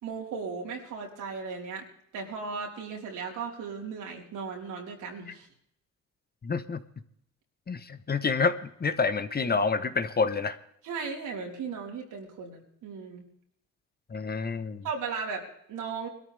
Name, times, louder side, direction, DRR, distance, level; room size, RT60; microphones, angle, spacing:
voice 1, 0.0-1.8 2.1-5.5 10.8-13.2 14.8-16.1, right 5 dB, 85° right, -1 dB, 4.4 m, -36 dB
voice 2, 6.4-6.8 7.7-10.6 14.1-14.8, left 4 dB, 30° left, 11 dB, 1.1 m, -28 dB
22.0 x 13.5 x 3.4 m, 0.71 s
cardioid pair, 90°, 30 cm